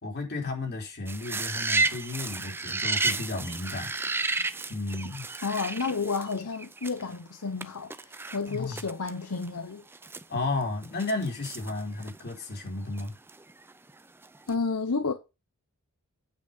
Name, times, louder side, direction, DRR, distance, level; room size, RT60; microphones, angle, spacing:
voice 1, 0.0-3.9 4.7-5.2 8.4-8.8 10.3-13.1, left 3 dB, 50° left, 3.4 m, -33 dB
sound 1, 1.1-7.2 7.6-7.7 7.9-9.1 9.4-9.5 9.9-12.4 13.0-13.9 14.2-14.5, right 3 dB, 10° right, 0.4 m, -32 dB
voice 2, 5.4-9.8 14.5-15.1, left 4 dB, 80° left, 0.9 m, -31 dB
9.2 x 5.6 x 5.1 m
head